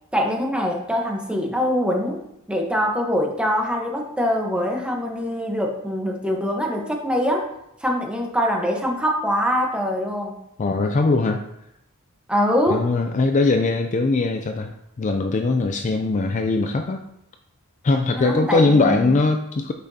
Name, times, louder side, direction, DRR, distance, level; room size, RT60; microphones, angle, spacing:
voice 1, 0.1-2.2 2.5-7.5 7.8-10.4 12.3-12.9 18.2-19.1, equal, 5° right, 0 dB, 1.1 m, -23 dB
voice 2, 10.6-11.4 12.7-17.0 17.8-19.7, left 3 dB, 35° left, 6 dB, 0.4 m, -21 dB
8.5 x 6.1 x 2.8 m, 0.82 s
head